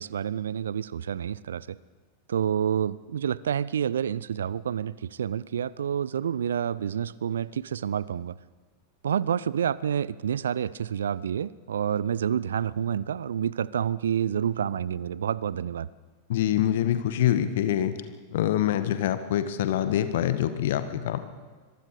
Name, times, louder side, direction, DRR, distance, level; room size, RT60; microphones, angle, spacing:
voice 1, 0.0-1.8 2.3-8.4 9.0-15.9, right 8 dB, 65° right, 22 dB, 0.5 m, -28 dB
voice 2, 16.3-18.0 18.3-21.2, left 11 dB, 55° left, 11 dB, 1.5 m, -25 dB
25.5 x 22.5 x 5.0 m, 1.5 s
figure-of-eight pair, 90°, 0 cm